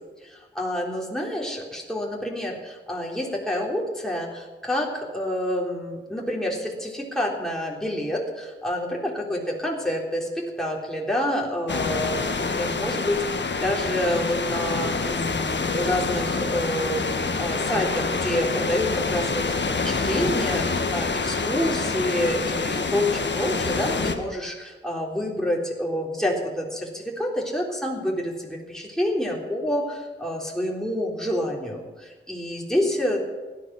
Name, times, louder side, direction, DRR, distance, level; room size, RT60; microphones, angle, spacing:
voice 1, 0.2-19.5 19.8-33.2, equal, ahead, -2 dB, 3.3 m, -28 dB
sound 1, 11.7-24.1, left 4 dB, 60° left, 1.5 m, -26 dB
16.5 x 10.5 x 6.1 m, 1.3 s
cardioid pair, 55°, 21 cm